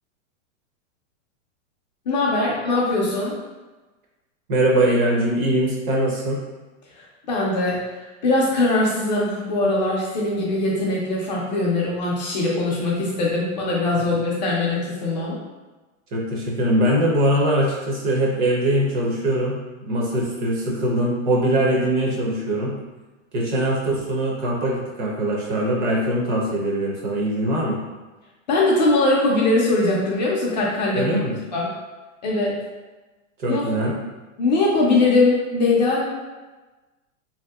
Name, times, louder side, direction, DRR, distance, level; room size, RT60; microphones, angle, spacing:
voice 1, 2.1-3.3 7.0-7.8 8.2-15.4 28.5-31.2 31.5-31.7 32.2-32.5 33.5-33.7 34.4-36.0, left 2 dB, 35° left, -4 dB, 0.4 m, -21 dB
voice 2, 4.5-6.4 13.9-14.0 16.1-22.8 23.3-27.8 31.0-31.4 33.4-33.9, right 1 dB, 40° right, -2 dB, 0.6 m, -22 dB
2.9 x 2.7 x 2.2 m, 1.2 s
supercardioid pair, 155°, 40 cm